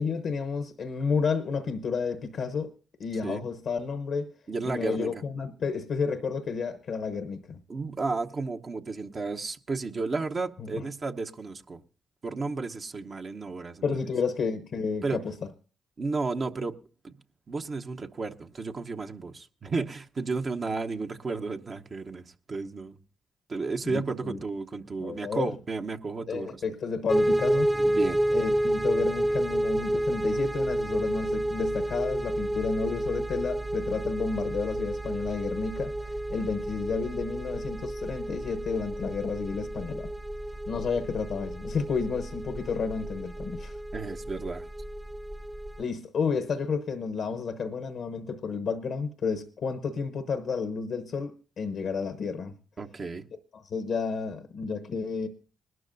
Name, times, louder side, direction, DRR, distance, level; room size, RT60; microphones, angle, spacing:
voice 1, 0.0-2.7 3.0-4.3 4.7-7.6 10.6-10.8 13.8-15.4 23.8-24.4 25.0-25.5 26.3-27.7 28.3-40.1 40.7-43.8 45.8-52.5 53.5-55.3, left 5 dB, 70° left, 0.9 m, -31 dB
voice 2, 4.5-5.2 7.7-11.8 12.2-13.8 15.0-15.2 16.0-16.7 17.0-17.1 17.5-23.0 23.5-26.6 27.8-28.2 43.9-44.6 52.8-53.3, right 3 dB, 50° right, 0.9 m, -33 dB
sound 1, 27.1-45.8, right 1 dB, 15° right, 0.6 m, -30 dB
20.0 x 12.5 x 2.6 m
supercardioid pair, 50°, 0 cm